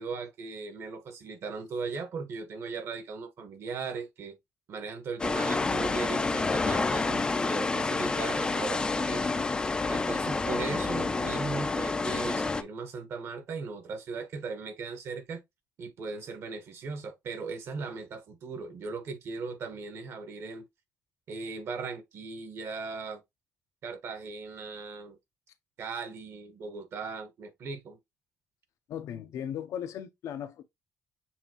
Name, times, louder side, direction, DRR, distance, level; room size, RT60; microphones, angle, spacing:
voice 1, 0.0-4.4 4.7-9.4 9.7-15.4 15.8-20.7 21.3-23.2 23.8-25.2 25.8-28.0, right 4 dB, 50° right, 1.2 m, -38 dB
sound 1, 5.2-12.6, left 3 dB, 15° left, 0.4 m, -29 dB
voice 2, 28.9-30.6, left 9 dB, 65° left, 0.6 m, -37 dB
7.1 x 2.6 x 2.9 m
cardioid pair, 165°, 6 cm